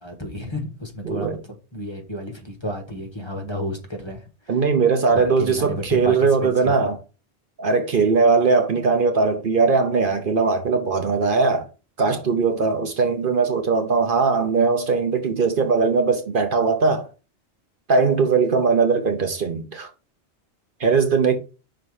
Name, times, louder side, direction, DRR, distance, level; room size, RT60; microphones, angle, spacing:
voice 1, 0.0-4.5 5.1-6.9, left 1 dB, 25° left, 1.1 m, -32 dB
voice 2, 1.0-1.4 4.5-7.0 7.6-11.7 12.0-17.1 17.9-19.9 20.8-21.4, right 4 dB, 55° right, 1.0 m, -20 dB
5.6 x 4.2 x 4.7 m
omnidirectional pair, 1.1 m